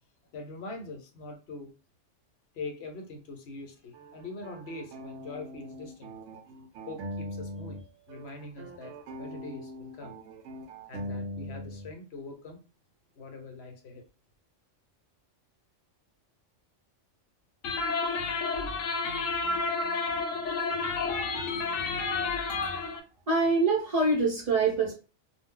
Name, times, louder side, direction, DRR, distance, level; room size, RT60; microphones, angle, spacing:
voice 1, 0.3-1.7 2.5-6.1 6.9-10.1 10.9-12.6 13.1-14.0, left 3 dB, 60° left, 1.0 m, -43 dB
sound 1, 3.9-7.8 8.1-11.9, equal, 80° right, 0.9 m, -41 dB
sound 2, 17.6-23.0, left 4 dB, 90° left, 0.9 m, -30 dB
voice 2, 22.5-23.0 23.3-24.9, right 3 dB, 45° right, 0.5 m, -26 dB
2.3 x 2.1 x 3.6 m
omnidirectional pair, 1.3 m